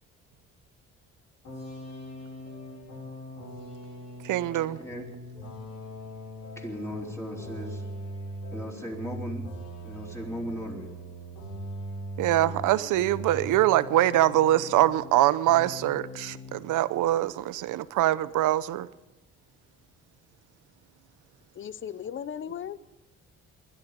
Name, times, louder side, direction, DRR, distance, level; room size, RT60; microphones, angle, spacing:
sound 1, 1.4-15.2 15.5-16.6, equal, 75° left, 7.6 m, -40 dB
voice 1, 4.2-4.8 12.2-18.9, right 14 dB, 85° right, 16 dB, 0.7 m, -24 dB
voice 2, 6.6-7.8 8.5-9.4 9.8-10.9, equal, 10° left, -2 dB, 4.1 m, -37 dB
voice 3, 21.5-23.0, left 8 dB, 40° left, 17 dB, 0.6 m, -37 dB
20.5 x 11.5 x 5.2 m, 1.0 s
cardioid pair, 90°, 30 cm